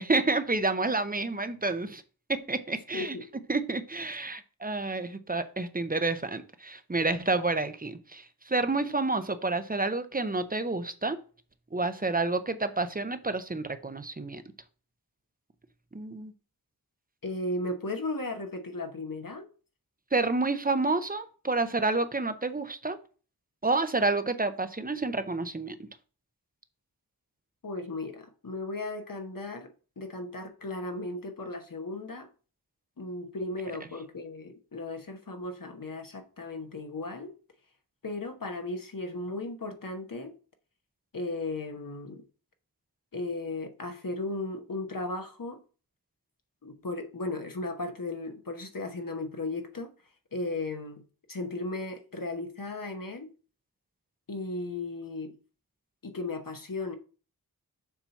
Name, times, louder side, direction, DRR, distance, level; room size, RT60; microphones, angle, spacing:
voice 1, 0.0-2.0 2.3-3.2 3.5-11.2 11.7-14.4 15.9-16.3 20.1-23.0 23.6-25.8, right 3 dB, 25° right, 0.6 m, -29 dB
voice 2, 2.9-3.3 17.2-19.4 27.6-32.3 33.0-37.3 38.0-40.3 41.1-42.2 43.1-45.6 46.6-49.9 50.3-51.0 51.3-53.3 54.3-55.4 56.0-56.9, left 2 dB, 65° left, 1.0 m, -36 dB
7.0 x 2.8 x 5.7 m
wide cardioid pair, 50°, 37 cm